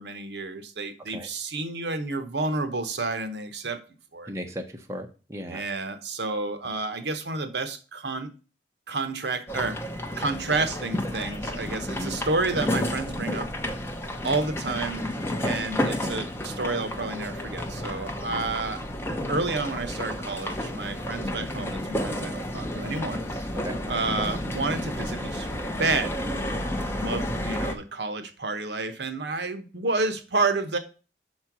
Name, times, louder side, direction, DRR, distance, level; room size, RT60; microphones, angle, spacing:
voice 1, 0.0-3.8 4.1-4.3 5.5-8.3 8.9-9.8 10.2-13.5 14.2-15.0 15.4-18.8 19.3-23.4 23.9-30.8, right 3 dB, 65° right, 8 dB, 0.9 m, -30 dB
voice 2, 4.3-5.6 11.9-12.1 18.3-18.4 23.5-23.8, equal, 15° right, 3 dB, 0.8 m, -36 dB
sound 1, 9.5-27.8, left 1 dB, 15° left, 0.7 m, -31 dB
5.9 x 4.3 x 5.9 m, 0.34 s
head